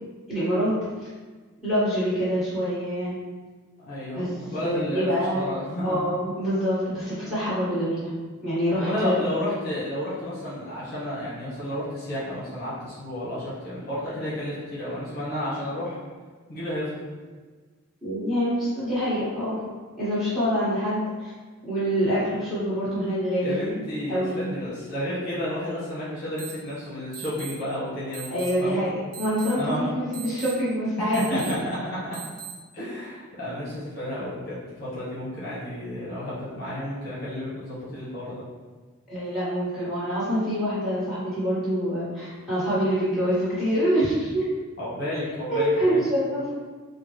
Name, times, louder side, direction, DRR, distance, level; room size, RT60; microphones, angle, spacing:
voice 1, 0.3-0.7 1.6-3.2 4.1-4.3 4.6-5.4 5.8-8.1 8.4-9.4 18.0-19.6 20.0-21.3 21.7-23.6 24.1-24.4 28.3-31.4 39.1-44.4 45.5-46.5, equal, ahead, -13 dB, 1.5 m, -25 dB
voice 2, 3.8-6.0 8.8-16.0 16.5-17.0 23.4-28.8 29.6-29.9 31.3-32.2 32.7-38.4 44.8-46.1, left 1 dB, 45° left, -9 dB, 0.9 m, -31 dB
sound 1, 26.4-26.5 27.1-27.5 28.1-28.5 29.1-29.5 30.1-30.5 31.1-31.5 32.1-32.5, right 9 dB, 50° right, 0.8 m, -38 dB
3.7 x 2.2 x 3.1 m, 1.4 s
head